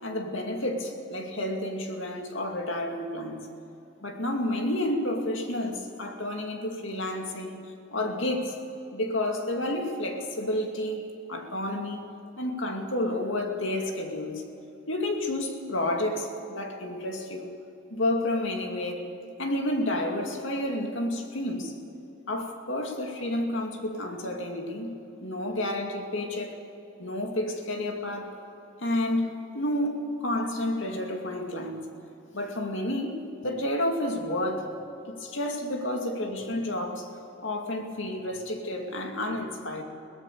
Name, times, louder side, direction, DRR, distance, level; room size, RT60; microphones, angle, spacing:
voice 1, 0.0-3.5 4.0-8.5 8.9-12.1 12.4-14.4 14.9-17.6 17.9-19.1 19.4-21.7 22.3-26.6 27.0-28.4 28.8-31.9 32.3-34.8 35.1-37.1 37.4-39.8, left 1 dB, 70° left, 3 dB, 2.4 m, -30 dB
22.5 x 17.0 x 6.9 m, 2.9 s
head